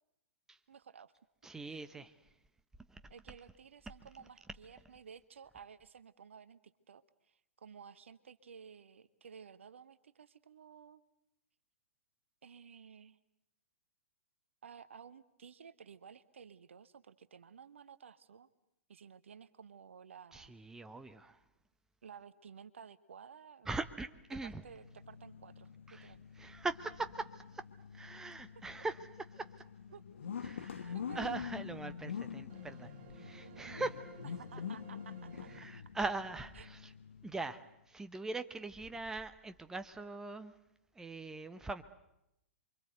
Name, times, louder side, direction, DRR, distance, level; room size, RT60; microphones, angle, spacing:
voice 1, 0.7-1.1 1.7-1.8 3.1-6.6 6.9-11.0 12.4-13.2 14.6-18.5 18.9-20.5 22.0-23.7 24.3-25.7 26.0-26.2 28.1-28.3 29.9-30.0 30.9-31.3 34.4-35.7 36.6-36.7, right 7 dB, 65° right, 1.2 m, -54 dB
voice 2, 1.4-2.2 2.9-3.0 20.3-21.4 23.6-24.6 25.9-27.7 27.9-29.5 30.4-34.2 35.5-36.9 37.2-40.5 40.9-41.8, right 3 dB, 5° right, 1.1 m, -41 dB
sound 1, 24.3-37.7, left 7 dB, 65° left, 1.5 m, -46 dB
sound 2, 29.9-30.1 30.5-31.0 31.7-32.1 32.5-35.6, right 9 dB, 45° right, 1.8 m, -58 dB
28.5 x 24.0 x 8.1 m
figure-of-eight pair, 110°, 7 cm